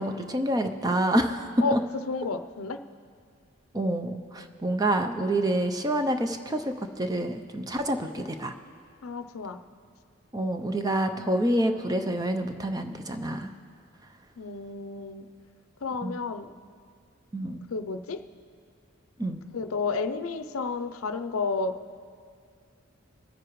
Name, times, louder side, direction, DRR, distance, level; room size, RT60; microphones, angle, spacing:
voice 1, 0.0-1.8 3.7-8.5 10.3-13.5 16.0-16.2 17.3-17.7 19.2-19.4, right 1 dB, 15° right, 6 dB, 0.5 m, -27 dB
voice 2, 1.6-2.8 9.0-9.6 11.2-11.3 14.4-15.3 15.8-16.5 17.7-18.2 19.5-21.8, left 4 dB, 85° left, 10 dB, 0.6 m, -31 dB
22.5 x 9.7 x 3.1 m, 2.2 s
head